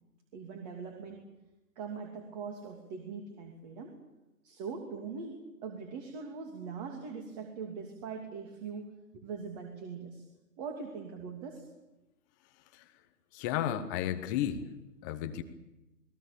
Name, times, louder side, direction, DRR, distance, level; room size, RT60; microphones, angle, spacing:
voice 1, 0.3-1.2 1.8-4.0 4.4-10.2 10.6-11.7, right 5 dB, 25° right, 3 dB, 2.8 m, -42 dB
voice 2, 13.3-14.7 15.0-15.4, left 11 dB, 10° left, 9 dB, 0.9 m, -33 dB
28.5 x 20.5 x 7.1 m, 0.99 s
hypercardioid pair, 150°, 47 cm